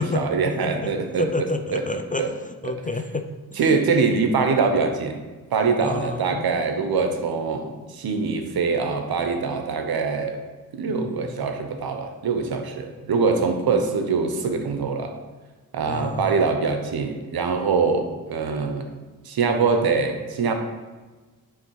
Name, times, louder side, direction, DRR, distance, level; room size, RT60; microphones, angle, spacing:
voice 1, 0.0-1.3 1.7-1.8 2.2-2.3 2.6-2.7 3.6-5.2 5.5-10.4 10.7-15.1 15.7-18.9 19.3-20.5, right 4 dB, 70° right, 6 dB, 0.8 m, -23 dB
voice 2, 0.6-0.9 1.2-3.3 3.5-3.7 5.8-6.5 10.9-11.4 15.9-16.5, left 3 dB, 20° left, 7 dB, 0.4 m, -30 dB
6.4 x 3.2 x 4.6 m, 1.3 s
cardioid pair, 60°, 39 cm